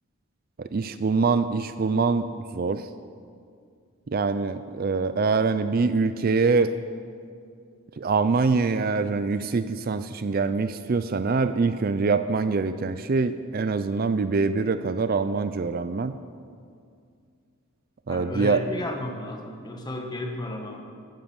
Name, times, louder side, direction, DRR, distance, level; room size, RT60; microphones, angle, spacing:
voice 1, 0.6-2.3 2.5-2.9 4.1-6.8 8.0-16.2 18.1-18.6, right 4 dB, 40° right, 11 dB, 0.4 m, -24 dB
voice 2, 18.1-20.8, left 1 dB, 20° left, 2 dB, 1.4 m, -33 dB
15.0 x 11.0 x 7.1 m, 2.3 s
head